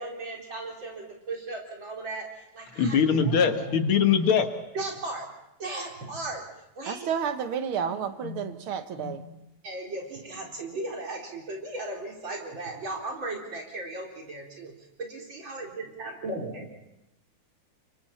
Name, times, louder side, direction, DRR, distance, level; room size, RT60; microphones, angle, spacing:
voice 1, 0.0-3.7 4.7-5.3 5.6-6.4 6.7-7.1 7.8-7.9 8.2-8.6 9.0-9.2 9.6-16.7, right 2 dB, 65° right, 4.9 m, -36 dB
voice 2, 2.7-4.5, left 7 dB, 85° left, 2.4 m, -22 dB
voice 3, 6.9-9.2, right 7 dB, 90° right, 2.1 m, -31 dB
29.5 x 24.0 x 4.3 m
omnidirectional pair, 2.3 m